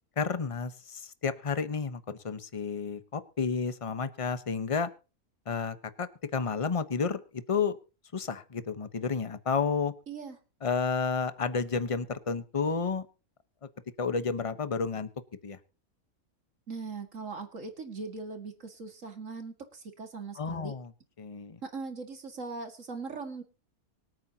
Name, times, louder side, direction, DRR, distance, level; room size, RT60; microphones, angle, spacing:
voice 1, 0.2-4.9 5.5-7.7 8.1-9.9 10.6-13.1 14.0-15.1 15.4-15.6 20.4-20.9 21.2-21.6, left 5 dB, 25° left, 12 dB, 0.9 m, -31 dB
voice 2, 10.1-10.4 16.7-20.7 21.6-23.4, right 4 dB, 60° right, 6 dB, 2.3 m, -40 dB
24.5 x 9.0 x 2.8 m, 0.32 s
omnidirectional pair, 1.5 m